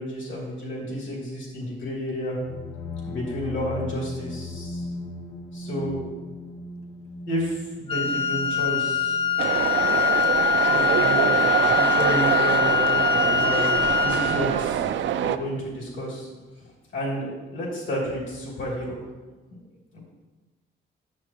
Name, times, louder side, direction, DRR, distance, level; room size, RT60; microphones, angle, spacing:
voice 1, 0.0-2.4 3.1-4.8 5.5-6.0 7.3-9.2 10.7-13.6 14.0-16.3 16.9-19.0 19.5-19.6 19.9-20.0, equal, 75° left, -4 dB, 2.7 m, -31 dB
sound 1, 2.4-10.1, left 2 dB, 55° left, 0.8 m, -38 dB
Wind instrument woodwind instrument, 7.9-14.5, left 7 dB, 30° left, 0.6 m, -23 dB
sound 2, 9.4-15.4, right 10 dB, 70° right, 0.4 m, -24 dB
10.5 x 7.3 x 3.0 m, 1.2 s
cardioid pair, 105°, 20 cm